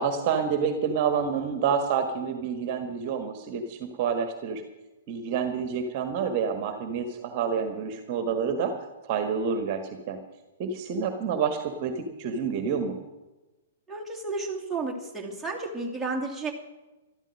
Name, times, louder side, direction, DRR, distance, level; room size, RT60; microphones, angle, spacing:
voice 1, 0.0-4.6 5.1-8.8 9.0-10.2 10.6-13.0, right 6 dB, 40° right, 8 dB, 1.6 m, -28 dB
voice 2, 13.9-16.5, right 3 dB, 5° right, -3 dB, 2.6 m, -32 dB
13.5 x 12.5 x 6.5 m, 1.1 s
figure-of-eight pair, 115°, 0 cm